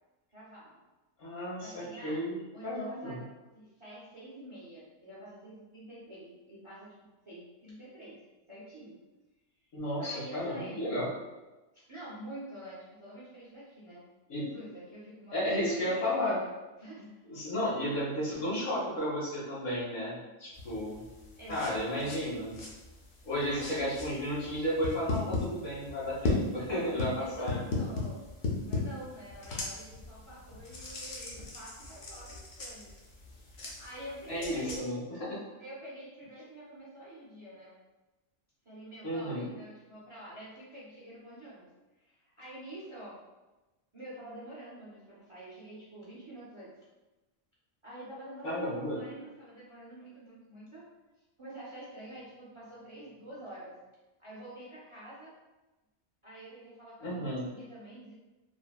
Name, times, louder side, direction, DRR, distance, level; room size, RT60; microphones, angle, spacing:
voice 1, 0.3-0.8 1.6-2.2 2.5-6.9 7.2-8.2 8.5-9.0 10.0-10.9 11.9-16.5 16.8-17.2 21.4-22.2 23.4-23.7 27.2-28.2 28.6-32.9 33.3-34.8 35.6-37.7 38.6-41.7 41.9-43.2 43.9-46.7 47.8-50.9 51.4-53.7 54.2-55.3 56.2-58.1, right 1 dB, 35° right, -8 dB, 0.5 m, -47 dB
voice 2, 1.2-2.3 2.6-3.2 9.7-11.1 14.3-14.4 15.3-16.4 17.3-21.0 21.5-22.5 23.2-27.9 34.3-35.4 39.0-39.5 48.4-49.0 57.0-57.4, equal, 75° left, -8 dB, 1.2 m, -33 dB
sound 1, 20.5-34.8, left 3 dB, 55° left, 0.6 m, -38 dB
3.3 x 2.1 x 2.3 m, 1.1 s
omnidirectional pair, 1.3 m